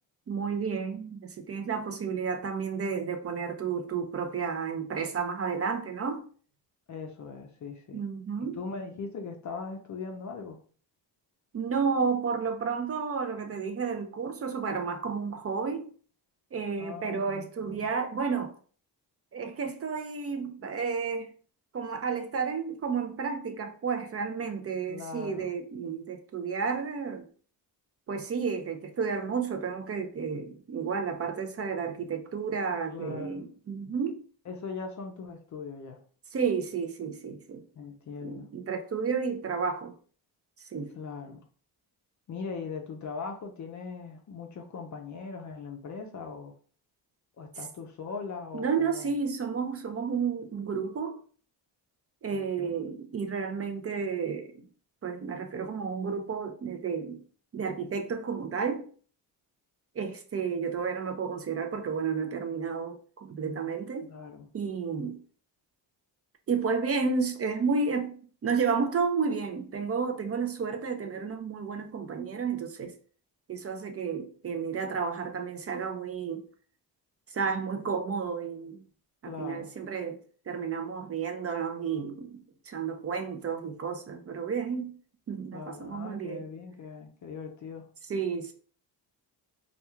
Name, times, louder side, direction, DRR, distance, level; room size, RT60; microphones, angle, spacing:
voice 1, 0.3-6.3 7.9-8.6 11.5-15.9 16.5-18.5 19.3-21.3 21.7-27.3 28.1-34.2 36.3-37.6 38.2-39.9 40.7-41.0 48.5-51.2 52.2-54.7 55.0-57.2 57.5-58.9 59.9-64.1 64.5-65.2 66.5-68.2 68.4-72.9 73.5-76.5 77.3-78.8 79.2-84.9 85.3-86.4 88.0-88.5, right 5 dB, 35° right, 0.4 m, -31 dB
voice 2, 6.9-8.0 8.6-10.6 16.8-17.9 24.9-25.5 32.9-33.4 34.5-36.0 37.8-38.5 40.9-41.4 42.3-46.5 47.4-49.1 52.3-52.7 64.0-64.5 79.3-79.7 85.5-87.9, left 5 dB, 40° left, 0.5 m, -40 dB
2.3 x 2.2 x 2.9 m
cardioid pair, 75°, 45 cm